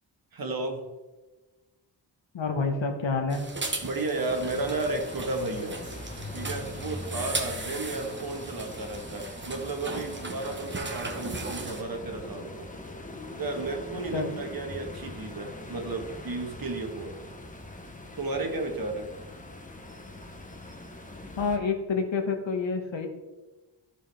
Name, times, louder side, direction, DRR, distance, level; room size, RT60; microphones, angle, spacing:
voice 1, 0.3-0.8 3.8-5.8 6.3-12.7 13.4-17.2 18.2-19.1, right 2 dB, 50° right, 3 dB, 1.3 m, -33 dB
voice 2, 2.3-3.4 14.1-14.3 21.4-23.1, left 4 dB, 85° left, 4 dB, 1.3 m, -28 dB
sound 1, 3.3-11.8, right 3 dB, 25° right, 1.0 m, -37 dB
sound 2, 4.3-21.6, left 2 dB, 20° left, 0.9 m, -42 dB
14.0 x 4.9 x 3.4 m, 1.1 s
wide cardioid pair, 145°, 44 cm